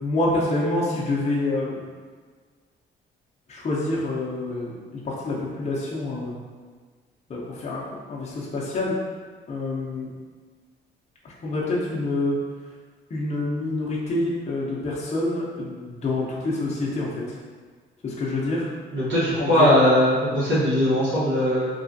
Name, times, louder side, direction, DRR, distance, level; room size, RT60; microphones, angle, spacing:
voice 1, 0.0-1.8 3.5-6.4 7.3-7.8 8.1-8.9 9.5-10.1 11.4-12.4 13.1-17.2 18.0-18.6 19.4-19.7, left 2 dB, 35° left, -5 dB, 0.6 m, -27 dB
voice 2, 18.9-21.7, left 1 dB, 75° right, -11 dB, 1.1 m, -20 dB
3.2 x 2.3 x 2.6 m, 1.5 s
cardioid pair, 90°, 20 cm